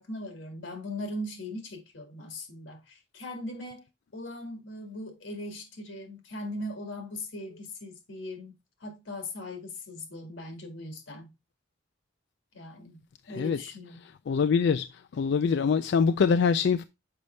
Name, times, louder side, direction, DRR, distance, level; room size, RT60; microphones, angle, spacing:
voice 1, 0.0-3.8 4.1-8.5 8.8-11.3 12.5-14.1, left 1 dB, 85° left, 1.9 m, -39 dB
voice 2, 13.3-13.6 14.3-14.9 15.1-16.8, left 6 dB, 60° left, 0.3 m, -24 dB
6.8 x 5.2 x 3.2 m
head